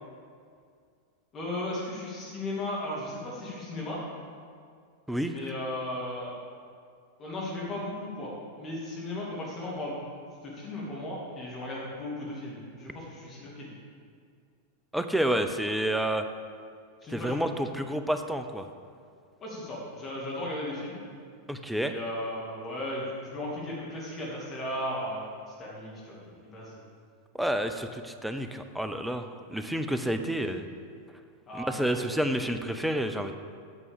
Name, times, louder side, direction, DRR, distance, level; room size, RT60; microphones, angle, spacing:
voice 1, 1.3-4.0 5.3-6.3 7.2-8.3 8.6-10.1 10.4-13.7 17.0-17.4 19.4-21.0 21.8-25.2 25.6-26.8 30.5-30.6 31.5-31.7 32.0-32.1, left 1 dB, 25° left, -5 dB, 2.5 m, -36 dB
voice 2, 14.9-16.2 17.1-18.7 21.5-21.9 27.3-30.7 31.6-33.4, right 1 dB, 5° right, 7 dB, 0.6 m, -29 dB
9.1 x 6.2 x 7.1 m, 2.2 s
figure-of-eight pair, 90°, 0 cm